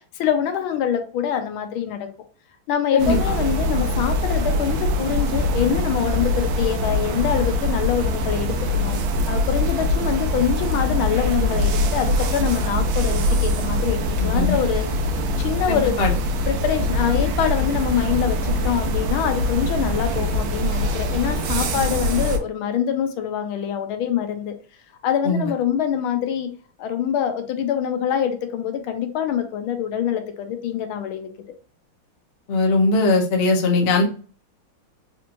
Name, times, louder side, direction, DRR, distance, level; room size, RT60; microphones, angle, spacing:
voice 1, 0.1-2.1 2.7-9.0 9.3-14.8 15.4-16.0 16.5-24.5 25.0-26.5 26.8-31.3, left 9 dB, 75° left, 7 dB, 1.4 m, -24 dB
sound 1, 3.0-22.4, left 1 dB, 75° right, 1.4 m, -23 dB
voice 2, 14.2-14.6 15.7-16.1 25.2-25.5 32.5-34.0, left 3 dB, 60° left, 1 dB, 0.6 m, -20 dB
4.2 x 3.0 x 2.5 m, 0.39 s
omnidirectional pair, 2.3 m